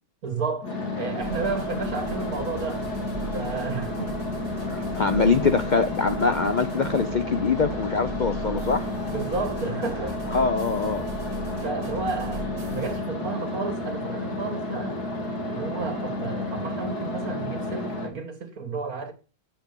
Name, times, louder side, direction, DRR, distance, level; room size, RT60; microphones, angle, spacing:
voice 1, 0.2-2.9 3.3-4.6 5.2-5.3 9.1-10.4 11.6-15.0 15.5-19.1, right 4 dB, 60° right, 2.3 m, -32 dB
sound 1, 0.6-18.1, left 2 dB, 70° left, 2.9 m, -31 dB
sound 2, 1.2-13.0, right 2 dB, 30° right, 3.0 m, -39 dB
voice 2, 4.6-8.9 10.3-11.1, left 4 dB, 55° left, 0.5 m, -24 dB
8.3 x 7.6 x 6.7 m
omnidirectional pair, 1.7 m